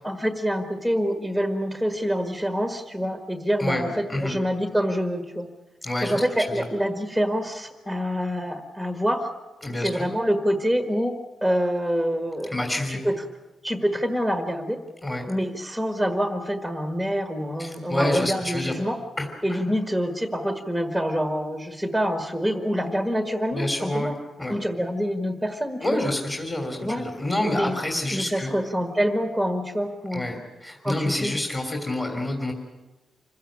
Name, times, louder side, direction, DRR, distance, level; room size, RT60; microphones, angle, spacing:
voice 1, 0.0-5.5 6.0-9.3 9.8-11.1 11.4-12.5 12.9-13.1 13.6-14.8 15.3-19.0 19.4-24.1 24.5-26.0 26.8-27.0 27.5-27.8 28.1-30.2 30.8-31.4, equal, 5° left, 5 dB, 1.6 m, -26 dB
voice 2, 3.6-4.4 5.8-6.6 9.6-10.0 12.5-13.0 15.0-15.3 17.6-18.7 19.2-19.6 23.5-24.1 24.4-24.5 25.8-28.5 30.1-32.5, left 1 dB, 20° left, 2 dB, 3.1 m, -28 dB
26.0 x 16.0 x 8.8 m, 1.1 s
wide cardioid pair, 135°, 0 cm